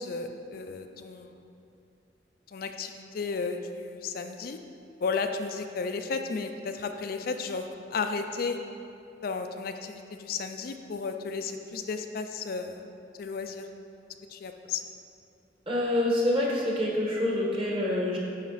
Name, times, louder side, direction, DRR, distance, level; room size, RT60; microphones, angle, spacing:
voice 1, 0.0-1.4 2.5-4.6 5.0-8.6 9.2-12.9 13.2-13.6 14.3-14.8, left 4 dB, 55° left, 6 dB, 0.4 m, -33 dB
voice 2, 15.7-18.2, left 1 dB, 30° right, -3 dB, 1.4 m, -26 dB
9.1 x 5.6 x 4.0 m, 2.7 s
head